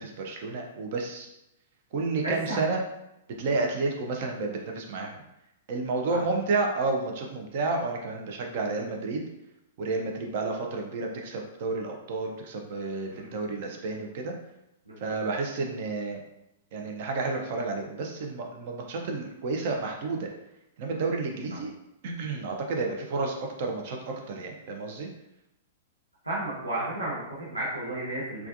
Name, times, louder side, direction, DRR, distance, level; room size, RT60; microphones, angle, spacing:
voice 1, 0.0-1.3 1.9-2.8 3.4-5.1 5.7-9.2 9.8-14.3 15.0-16.2 16.7-20.3 20.8-21.7 22.0-25.1, right 3 dB, 45° right, 2 dB, 0.5 m, -31 dB
voice 2, 2.2-2.6 3.4-3.5 6.1-6.2 13.1-13.3 14.9-15.1 21.5-21.6 26.2-28.5, right 1 dB, 85° right, -8 dB, 0.9 m, -33 dB
3.3 x 2.3 x 2.5 m, 0.87 s
figure-of-eight pair, 105°, 0 cm